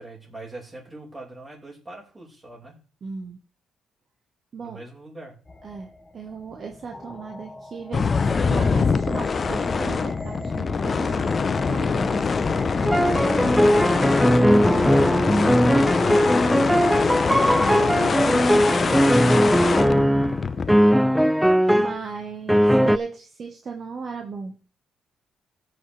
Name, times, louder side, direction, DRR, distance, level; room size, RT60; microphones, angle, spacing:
voice 1, 0.0-2.8 4.6-5.4, right 2 dB, 20° right, -3 dB, 5.0 m, -42 dB
voice 2, 3.0-3.4 4.5-4.8 5.6-15.3 17.6-19.4 21.7-24.5, right 4 dB, 50° right, 3 dB, 1.3 m, -36 dB
sound 1, 5.5-14.5, left 2 dB, 20° left, 1.5 m, -37 dB
sound 2, 7.9-20.8, left 5 dB, 40° left, 0.7 m, -23 dB
sound 3, 12.9-20.4 20.7-22.0 22.5-23.0, equal, ahead, 0.4 m, -19 dB
18.0 x 6.4 x 3.3 m, 0.39 s
cardioid pair, 90°, 0 cm